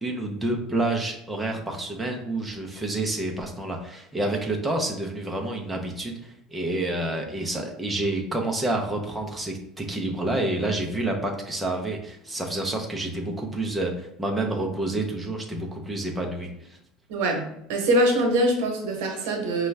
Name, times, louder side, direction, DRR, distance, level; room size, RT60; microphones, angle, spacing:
voice 1, 0.0-16.8, right 2 dB, 5° right, 0 dB, 0.7 m, -29 dB
voice 2, 17.1-19.7, right 1 dB, 85° right, 2 dB, 0.9 m, -23 dB
5.2 x 2.3 x 3.3 m, 0.77 s
cardioid pair, 145°, 0 cm